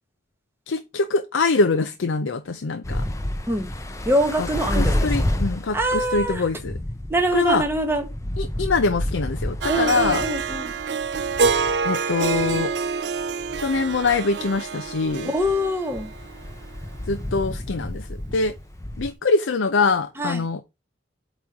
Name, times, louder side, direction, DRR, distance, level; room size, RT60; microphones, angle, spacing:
voice 1, 0.7-3.1 4.4-4.5 4.7-6.8 7.3-7.6 8.4-10.2 11.8-12.7 13.6-15.3 17.1-18.5 19.0-20.6, left 3 dB, 90° left, 0.6 m, -23 dB
sound 1, 2.8-19.1, left 1 dB, 15° left, 0.6 m, -30 dB
voice 2, 4.0-5.3 5.7-6.4 7.1-8.1 9.7-10.7 15.2-16.1 20.2-20.4, right 1 dB, 10° right, 1.1 m, -24 dB
Harp, 9.6-16.8, right 5 dB, 65° right, 0.5 m, -27 dB
8.2 x 3.1 x 4.7 m
head